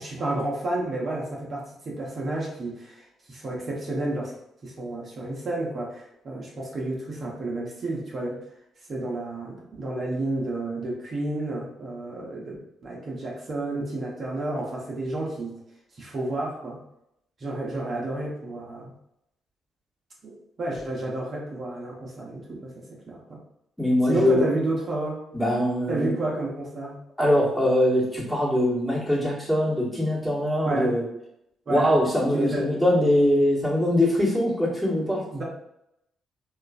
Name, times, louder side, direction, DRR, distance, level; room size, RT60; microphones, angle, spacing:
voice 1, 0.0-4.3 4.6-8.4 8.9-12.6 12.8-15.5 16.0-16.8 17.4-18.9 20.2-23.4 24.0-25.2 25.9-27.0 30.6-30.9 31.7-31.9 32.3-32.8 35.3-35.4, right 2 dB, 50° right, -3 dB, 0.8 m, -31 dB
voice 2, 23.8-24.5 25.3-26.1 27.2-31.0 31.7-35.2, left 1 dB, 5° left, -6 dB, 1.2 m, -22 dB
3.0 x 2.4 x 2.3 m, 0.81 s
hypercardioid pair, 50°, 0 cm